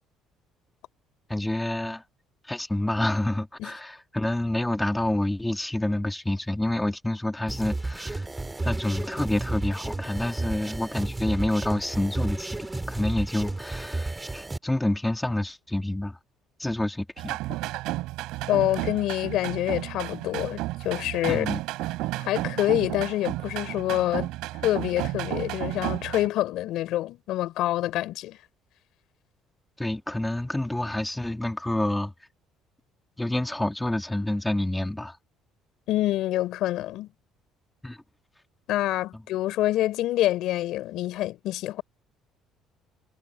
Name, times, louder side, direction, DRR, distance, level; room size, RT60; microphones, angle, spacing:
voice 1, 1.3-2.0 2.5-8.3 8.6-16.2 16.6-17.4 21.3-21.6 29.8-32.1 33.2-35.2 37.8-38.0, left 1 dB, 5° left, 2.4 m, -28 dB
sound 1, 7.5-14.6, right 2 dB, 10° right, 2.2 m, -32 dB
sound 2, 17.2-26.3, right 18 dB, 85° right, 5.5 m, -32 dB
voice 2, 18.5-21.5 22.2-24.3 24.6-28.4 35.9-37.1 38.7-41.8, left 15 dB, 70° left, 3.9 m, -26 dB
cardioid pair, 140°, 0 cm